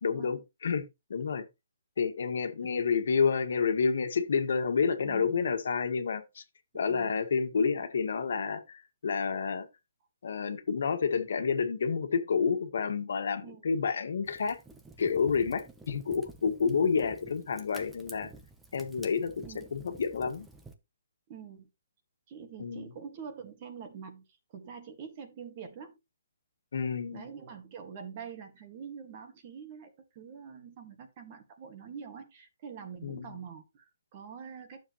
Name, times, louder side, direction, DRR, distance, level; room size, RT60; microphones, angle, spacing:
voice 1, 0.0-0.8 1.1-1.4 2.0-6.4 6.7-9.7 10.2-14.6 15.0-18.3 18.7-20.5 22.6-22.9 26.7-27.2 33.0-33.2, left 5 dB, 60° left, 1.8 m, -29 dB
voice 2, 5.0-5.4 6.7-7.2 13.4-13.7 19.4-19.7 21.3-21.7 22.3-24.2 24.5-26.0 27.1-34.8, right 7 dB, 25° right, 1.8 m, -45 dB
Fire, 14.2-20.7, right 3 dB, 5° right, 0.9 m, -51 dB
11.5 x 7.1 x 3.1 m
hypercardioid pair, 170°, 0 cm